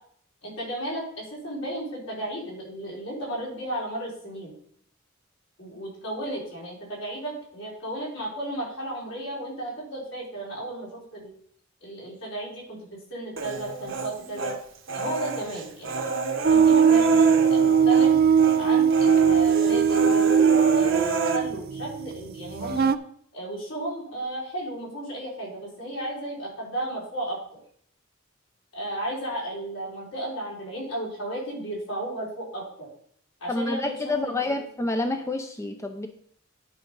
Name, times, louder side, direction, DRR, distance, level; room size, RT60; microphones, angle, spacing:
voice 1, 0.4-4.5 5.6-11.3 11.8-14.5 14.9-16.1 16.5-18.2 18.6-22.9 23.3-27.4 28.7-32.9 33.4-33.9 34.2-34.6, right 1 dB, 75° left, -5 dB, 4.6 m, -34 dB
Human voice, 13.4-14.6 14.9-18.1 18.4-18.6 18.9-21.4, right 2 dB, 70° right, 1.2 m, -29 dB
sound 1, 16.4-23.0, right 7 dB, 50° right, 0.4 m, -20 dB
voice 2, 33.5-36.1, left 2 dB, 15° left, 6 dB, 0.6 m, -28 dB
10.5 x 4.9 x 5.4 m, 0.63 s
head